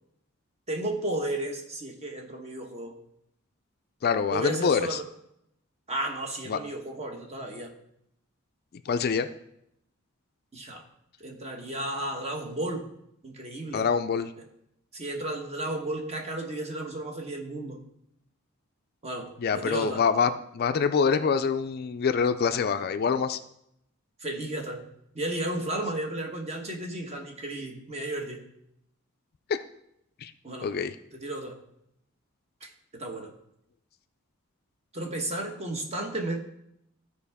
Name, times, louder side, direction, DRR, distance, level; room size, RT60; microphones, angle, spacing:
voice 1, 0.7-3.0 4.3-5.0 5.9-7.7 10.5-10.8 11.2-12.9 13.2-13.9 14.9-17.8 19.0-20.0 24.2-24.8 25.1-28.4 30.4-30.7 31.1-31.5 32.6-33.3 34.9-36.4, right 1 dB, 30° right, 2 dB, 1.2 m, -33 dB
voice 2, 4.0-5.0 6.5-6.6 8.9-9.3 13.7-14.3 19.4-23.4 30.2-30.3 30.6-30.9, left 6 dB, 50° left, 10 dB, 0.4 m, -25 dB
13.5 x 4.7 x 3.5 m, 0.77 s
head